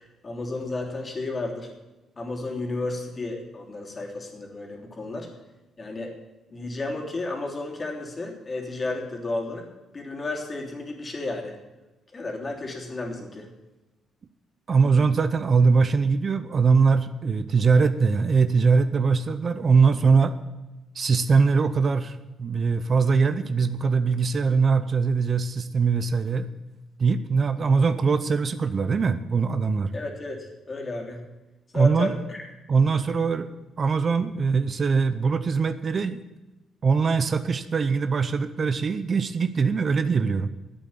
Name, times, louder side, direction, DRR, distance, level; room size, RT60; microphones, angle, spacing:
voice 1, 0.0-1.7 2.2-5.3 5.8-6.2 6.5-9.7 9.9-11.6 12.1-13.5 29.9-31.2 31.7-32.5, left 2 dB, 30° left, 1 dB, 3.2 m, -32 dB
voice 2, 14.7-20.4 20.9-26.5 27.0-29.9 31.7-32.1 32.7-36.2 36.8-40.5, right 5 dB, 40° right, 12 dB, 0.7 m, -22 dB
11.5 x 8.3 x 8.7 m, 1.1 s
cardioid pair, 90°, 0 cm